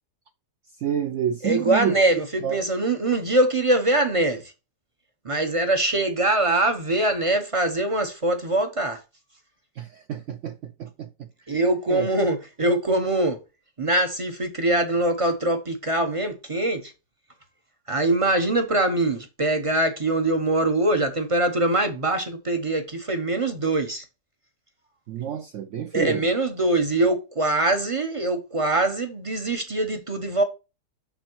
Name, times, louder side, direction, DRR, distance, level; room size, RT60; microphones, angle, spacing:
voice 1, 0.8-2.0 2.4-2.6 9.8-11.6 11.9-12.1 25.1-26.3, right 9 dB, 85° right, 0.6 m, -29 dB
voice 2, 1.4-4.5 5.2-9.0 11.5-13.4 13.8-16.9 17.9-24.0 25.9-30.4, right 2 dB, 45° right, 0.4 m, -23 dB
7.1 x 6.1 x 3.0 m
omnidirectional pair, 1.9 m